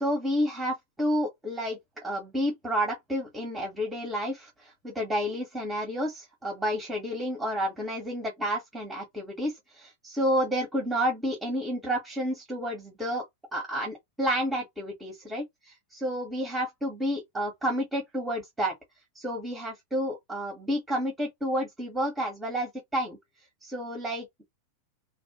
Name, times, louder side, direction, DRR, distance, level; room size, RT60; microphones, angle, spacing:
voice 1, 0.0-13.2 13.5-18.7 19.1-23.2 23.6-24.4, equal, 10° right, 1.0 m, -30 dB
2.4 x 2.1 x 2.9 m
figure-of-eight pair, 90°, 0 cm